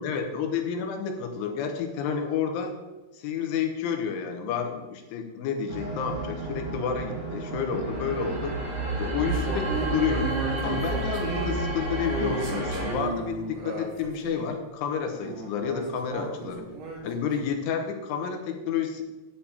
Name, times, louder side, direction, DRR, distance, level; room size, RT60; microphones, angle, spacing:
voice 1, 0.0-2.7 3.1-8.6 9.0-10.3 10.6-16.6 17.0-19.0, left 6 dB, 75° left, 5 dB, 3.6 m, -30 dB
sound 1, 5.7-12.9, right 2 dB, 85° right, 6.1 m, -31 dB
sound 2, 9.3-14.5 15.2-17.5, right 3 dB, 60° right, 2.3 m, -34 dB
11.5 x 5.1 x 8.6 m, 1.1 s
omnidirectional pair, 5.7 m